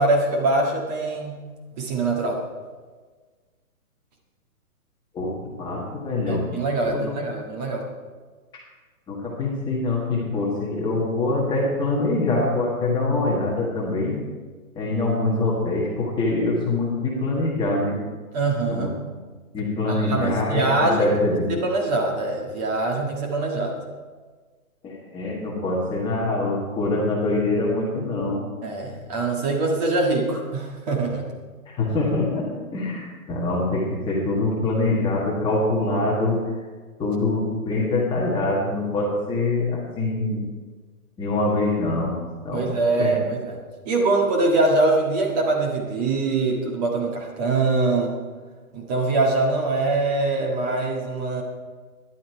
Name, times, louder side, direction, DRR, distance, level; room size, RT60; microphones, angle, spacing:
voice 1, 0.0-1.4 1.8-2.4 6.3-7.9 18.3-18.9 19.9-21.1 21.5-23.8 28.6-31.2 42.5-43.6 43.8-48.2 48.7-51.4, right 2 dB, 30° right, 0 dB, 1.8 m, -23 dB
voice 2, 5.6-6.5 6.9-7.1 9.1-14.2 14.7-18.0 18.7-18.9 19.5-21.5 24.8-28.4 31.7-36.4 37.0-40.4 41.2-42.2 42.4-43.1, left 2 dB, 10° left, -4 dB, 1.6 m, -24 dB
13.0 x 11.0 x 4.7 m, 1.4 s
hypercardioid pair, 155°, 44 cm